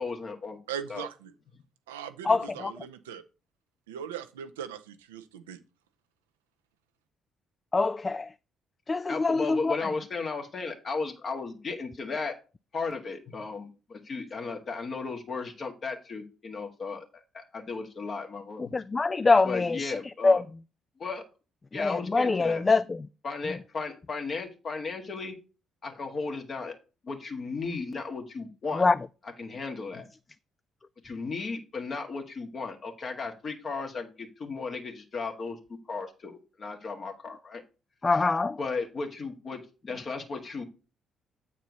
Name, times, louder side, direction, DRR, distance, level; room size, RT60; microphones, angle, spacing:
voice 1, 0.0-0.6 0.9-1.1 9.1-12.3 12.7-17.0 17.3-18.7 19.4-20.4 21.0-21.2 21.7-22.6 23.2-25.3 25.8-26.7 27.0-28.8 29.4-30.1 31.0-35.6 35.9-37.6 38.0-38.3 38.6-39.6 39.9-40.6, left 4 dB, 50° left, 1.6 m, -35 dB
voice 2, 0.7-1.3 1.9-3.2 3.9-5.6, right 8 dB, 85° right, 0.4 m, -39 dB
voice 3, 2.2-2.7 7.7-8.3 8.9-9.9 18.6-20.0 20.2-20.4 21.7-23.1 28.8-29.0 38.0-38.6, left 3 dB, 30° left, 0.3 m, -24 dB
8.1 x 4.3 x 5.2 m
hypercardioid pair, 45°, 0 cm